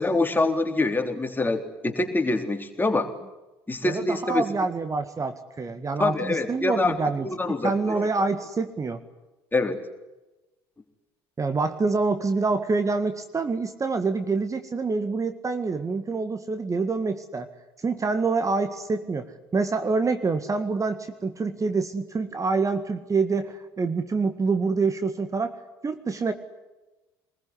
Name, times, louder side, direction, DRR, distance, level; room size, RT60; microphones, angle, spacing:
voice 1, 0.0-3.1 3.7-4.4 6.0-7.0 7.2-8.0 9.5-9.8, left 2 dB, 15° left, 4 dB, 3.8 m, -25 dB
voice 2, 3.8-7.3 7.6-9.0 11.4-17.5 17.8-25.5 25.8-26.3, right 4 dB, 25° right, 9 dB, 1.9 m, -26 dB
24.0 x 21.0 x 9.9 m, 1.1 s
figure-of-eight pair, 60°, 13 cm